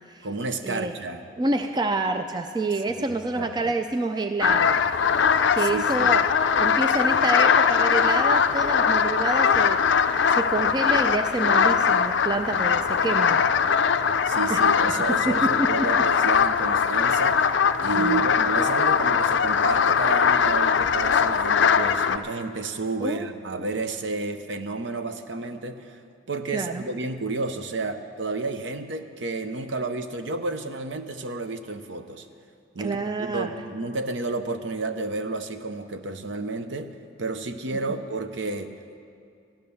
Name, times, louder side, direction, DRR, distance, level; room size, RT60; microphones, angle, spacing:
voice 1, 0.2-1.2 3.0-3.7 5.6-6.1 14.3-17.5 17.8-26.0 26.3-32.3 32.7-38.7, right 3 dB, 65° right, 8 dB, 0.7 m, -31 dB
voice 2, 1.4-4.8 5.5-6.2 6.6-13.4 14.5-14.6 15.1-15.9 17.9-18.2 23.0-23.3 26.5-26.8 32.8-33.5, right 2 dB, 20° right, 7 dB, 0.3 m, -28 dB
sound 1, 4.4-22.2, left 6 dB, 65° left, 0.4 m, -21 dB
13.5 x 10.5 x 6.9 m, 2.4 s
head